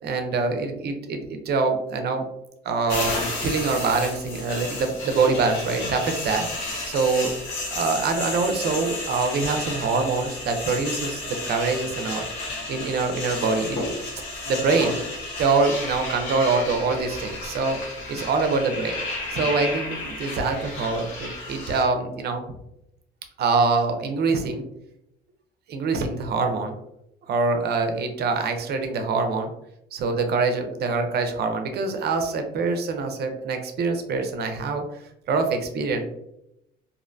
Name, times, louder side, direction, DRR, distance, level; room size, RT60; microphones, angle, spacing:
voice 1, 0.0-2.3 2.6-6.4 6.9-7.3 7.7-12.2 12.7-14.0 14.5-15.0 15.4-17.8 18.1-19.0 19.3-22.5 23.4-24.7 25.7-26.8 27.3-29.5 29.9-34.8 35.3-36.0, right 4 dB, 60° right, 5 dB, 0.5 m, -24 dB
sound 1, 2.9-21.8, left 2 dB, 90° left, 0.8 m, -32 dB
2.6 x 2.1 x 2.5 m, 0.82 s
cardioid pair, 90°, 19 cm